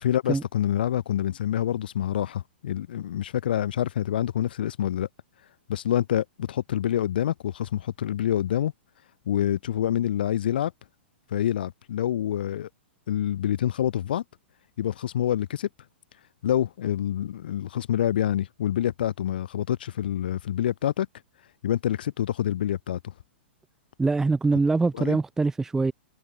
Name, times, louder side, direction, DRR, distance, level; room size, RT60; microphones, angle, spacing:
voice 1, 0.0-5.1 5.7-8.7 9.3-10.7 11.3-12.7 13.1-14.2 14.8-15.7 16.4-21.1 21.6-23.1 24.9-25.2, left 11 dB, 55° left, 0.3 m, -26 dB
voice 2, 24.0-25.9, right 3 dB, 5° right, 0.5 m, -23 dB
figure-of-eight pair, 105°, 6 cm